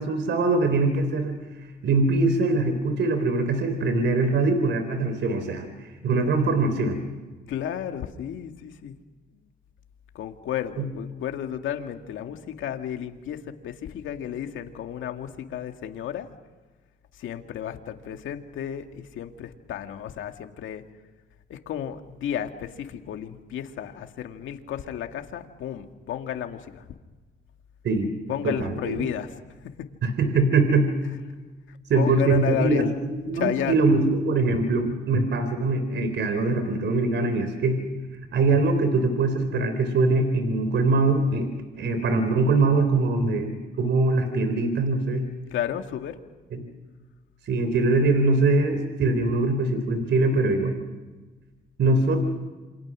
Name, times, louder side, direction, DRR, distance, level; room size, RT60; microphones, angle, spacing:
voice 1, 0.0-1.3 1.8-7.0 10.8-10.9 27.8-28.1 28.4-29.0 30.0-30.9 31.9-37.8 38.3-41.5 41.8-45.2 46.5-46.6 47.4-50.7 51.8-52.2, right 3 dB, 65° right, 8 dB, 3.7 m, -22 dB
voice 2, 7.5-9.0 10.1-16.3 17.2-20.8 21.5-26.8 28.3-29.3 31.7-33.0 33.3-33.9 45.5-46.2, left 10 dB, 80° left, 5 dB, 2.2 m, -32 dB
28.0 x 25.5 x 6.3 m, 1.3 s
cardioid pair, 90°, 20 cm